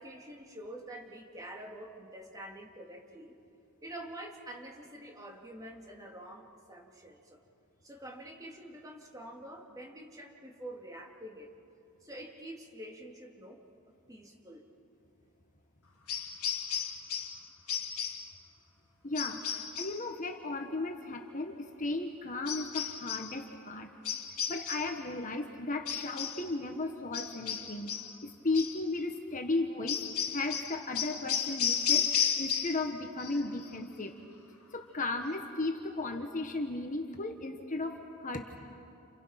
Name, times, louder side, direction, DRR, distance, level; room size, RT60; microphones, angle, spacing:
voice 1, 0.0-3.3 3.8-7.4 7.8-11.5 12.0-14.7, right 1 dB, 15° right, 0 dB, 2.9 m, -47 dB
sound 1, 16.1-17.4 17.7-18.3 19.1-20.0 22.5-23.3 24.0-25.0 25.9-26.5 27.1-28.1 28.5-28.8 29.9-32.9 33.2-33.7, left 8 dB, 85° left, 1.9 m, -33 dB
voice 2, 19.0-23.9 24.5-27.9 28.2-30.0 30.3-32.1 32.4-34.1 34.7-38.6, left 2 dB, 35° left, 4 dB, 1.4 m, -35 dB
29.5 x 29.0 x 5.9 m, 2.5 s
head